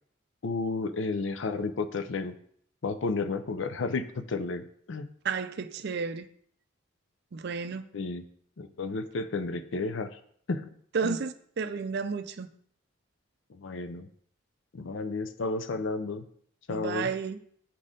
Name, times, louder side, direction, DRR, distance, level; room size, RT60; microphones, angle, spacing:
voice 1, 0.4-2.3 2.8-5.1 7.9-8.2 8.6-10.2 10.5-10.7 11.0-11.2 13.5-14.1 14.7-16.2 16.7-17.1, left 3 dB, 65° left, 0.5 m, -32 dB
voice 2, 5.2-6.3 7.3-7.9 10.9-12.5 16.7-17.4, right 5 dB, 55° right, 0.4 m, -32 dB
7.4 x 4.2 x 5.0 m
head